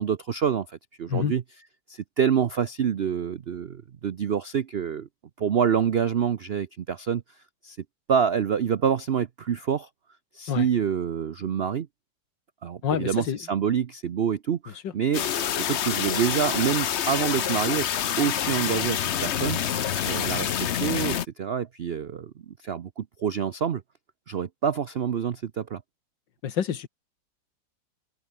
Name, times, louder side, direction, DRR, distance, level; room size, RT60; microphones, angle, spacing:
voice 1, 0.0-1.4 1.9-5.1 5.4-7.2 7.6-7.8 8.1-9.9 10.3-11.9 12.6-15.2 15.7-19.6 20.0-23.8 24.3-25.8, right 8 dB, 80° right, 0.5 m, -27 dB
voice 2, 12.8-13.4 26.4-26.9, left 8 dB, 75° left, 2.1 m, -27 dB
sound 1, 15.1-21.3, left 9 dB, 55° left, 0.8 m, -27 dB
omnidirectional pair, 2.0 m